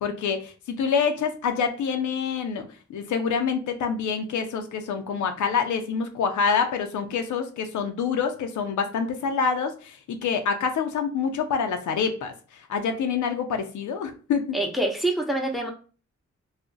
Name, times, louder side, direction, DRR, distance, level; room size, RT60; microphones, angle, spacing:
voice 1, 0.0-14.6, left 6 dB, 85° left, 6 dB, 0.5 m, -26 dB
voice 2, 14.5-15.7, right 1 dB, ahead, 3 dB, 0.7 m, -25 dB
2.4 x 2.0 x 3.8 m, 0.37 s
cardioid pair, 60°, 29 cm